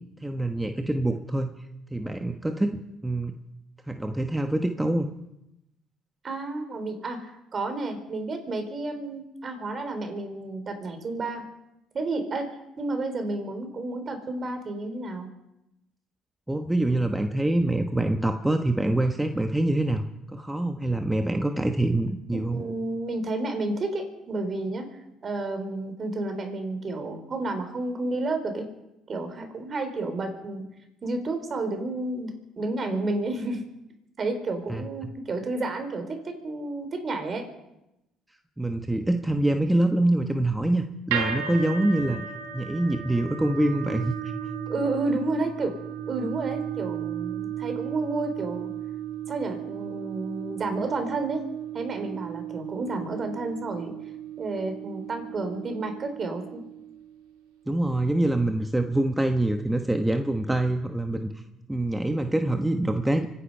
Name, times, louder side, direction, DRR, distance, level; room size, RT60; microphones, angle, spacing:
voice 1, 0.2-1.5 1.9-3.3 3.9-5.1 16.5-22.6 34.7-34.8 38.6-42.2 42.5-44.3 57.7-61.4 61.7-63.3, right 1 dB, 10° right, 6 dB, 1.2 m, -25 dB
voice 2, 6.2-11.4 11.9-15.3 22.3-24.9 25.2-28.7 29.1-30.6 31.0-33.6 34.2-37.4 44.7-45.7 46.1-48.7 49.3-51.4 51.7-53.9 54.4-56.6, right 2 dB, 40° right, 6 dB, 4.2 m, -31 dB
sound 1, 41.1-57.3, right 9 dB, 90° right, 2.5 m, -35 dB
25.0 x 10.5 x 5.6 m, 0.89 s
supercardioid pair, 70°, 0 cm